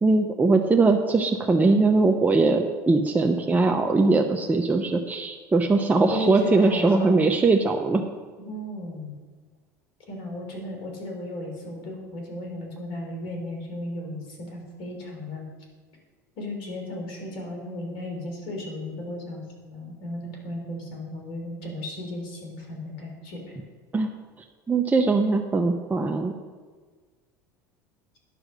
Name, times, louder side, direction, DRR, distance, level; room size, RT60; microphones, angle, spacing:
voice 1, 0.0-8.0 23.9-24.1 24.7-26.3, right 3 dB, 15° right, 3 dB, 0.8 m, -21 dB
voice 2, 6.1-7.1 8.4-9.1 10.1-15.4 16.4-23.6, left 1 dB, 60° left, 1 dB, 3.6 m, -35 dB
10.0 x 6.3 x 6.4 m, 1.5 s
hypercardioid pair, 80°, 10 cm